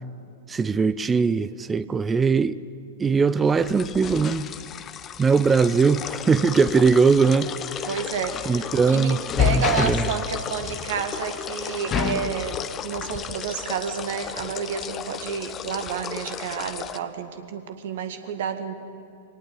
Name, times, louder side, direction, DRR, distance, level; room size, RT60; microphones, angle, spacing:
voice 1, 0.5-2.6 3.0-4.5 5.2-7.9 8.5-9.2 9.5-10.0, right 5 dB, 15° right, 0.5 m, -20 dB
sound 1, 3.4-17.0, left 8 dB, 25° left, 0.9 m, -31 dB
voice 2, 7.9-18.7, right 7 dB, 55° right, 2.0 m, -30 dB
23.5 x 18.5 x 8.9 m
figure-of-eight pair, 100°, 0 cm